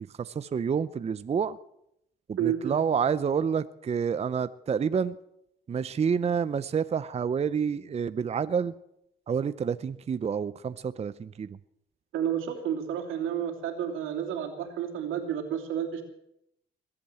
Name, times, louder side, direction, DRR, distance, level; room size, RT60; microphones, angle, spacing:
voice 1, 0.2-1.6 2.3-5.1 5.7-8.7 9.3-11.5, right 6 dB, 30° right, 14 dB, 0.6 m, -28 dB
voice 2, 2.4-2.8 12.1-16.0, right 9 dB, 90° right, 4 dB, 2.9 m, -31 dB
21.5 x 8.6 x 7.7 m, 0.80 s
cardioid pair, 90°, 20 cm